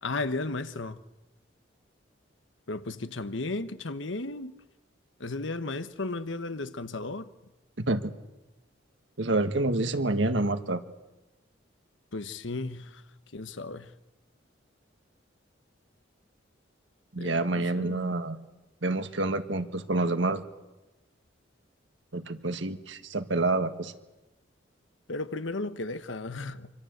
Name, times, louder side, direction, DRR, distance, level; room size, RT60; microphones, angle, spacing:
voice 1, 0.0-1.0 2.7-4.5 5.2-7.3 12.1-12.9 13.3-13.9 17.2-18.1 25.1-26.7, left 2 dB, 80° left, 1.2 m, -34 dB
voice 2, 9.2-10.8 17.1-18.4 18.8-20.4 22.1-23.9, right 2 dB, 75° right, 1.7 m, -28 dB
26.5 x 25.0 x 8.1 m
head